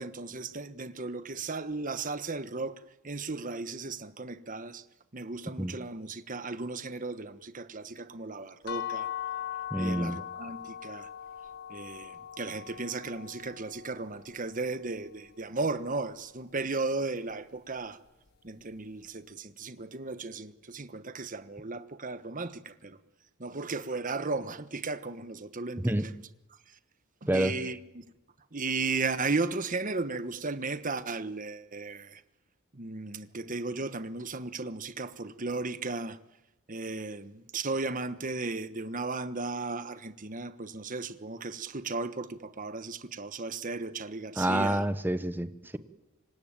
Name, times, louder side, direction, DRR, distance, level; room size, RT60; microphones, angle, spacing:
voice 1, 0.0-4.8 5.1-9.1 9.8-11.1 11.7-18.0 18.4-23.0 23.4-26.2 26.7-26.8 27.2-28.0 28.5-32.2 32.7-36.2 36.7-44.8, right 3 dB, 40° right, 1.2 m, -35 dB
sound 1, 8.7-14.5, left 10 dB, 50° left, 0.9 m, -40 dB
voice 2, 9.7-10.2 25.8-26.1 27.3-27.7 44.4-45.8, right 1 dB, 10° right, 1.0 m, -28 dB
26.5 x 23.5 x 8.9 m
head